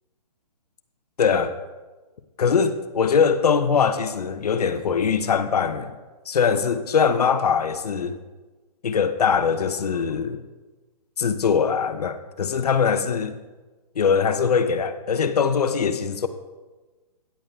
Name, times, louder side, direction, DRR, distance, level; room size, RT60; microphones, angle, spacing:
voice 1, 1.2-1.5 2.4-5.9 6.3-8.2 8.8-10.4 11.2-13.4 14.0-16.3, left 6 dB, 65° left, 0.8 m, -22 dB
10.0 x 8.7 x 3.6 m
hypercardioid pair, 165°, 21 cm